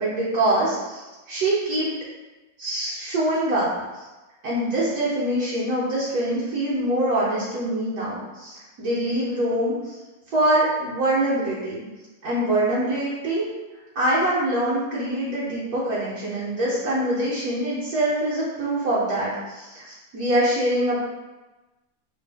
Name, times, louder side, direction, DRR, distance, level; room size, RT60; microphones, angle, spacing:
voice 1, 0.0-1.9 2.6-3.7 3.9-4.1 4.4-10.0 10.3-11.8 12.2-13.5 13.9-21.0, right 1 dB, 65° right, -9 dB, 1.2 m, -24 dB
3.2 x 2.3 x 3.4 m, 1.2 s
omnidirectional pair, 1.9 m